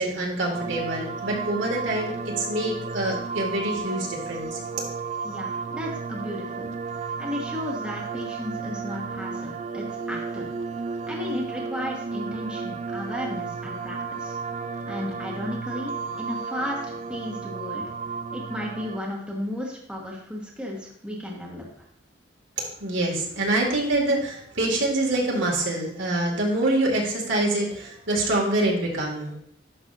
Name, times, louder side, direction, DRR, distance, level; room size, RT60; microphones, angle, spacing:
voice 1, 0.0-4.8 22.6-29.3, right 1 dB, 75° right, -2 dB, 2.2 m, -25 dB
sound 1, 0.5-19.0, right 5 dB, 35° right, 0.3 m, -33 dB
voice 2, 5.2-6.7 7.2-10.5 11.1-14.3 14.9-15.9 16.2-16.8 17.1-17.9 18.3-21.8, left 1 dB, 5° right, -3 dB, 1.3 m, -34 dB
11.0 x 6.1 x 2.6 m, 0.66 s
head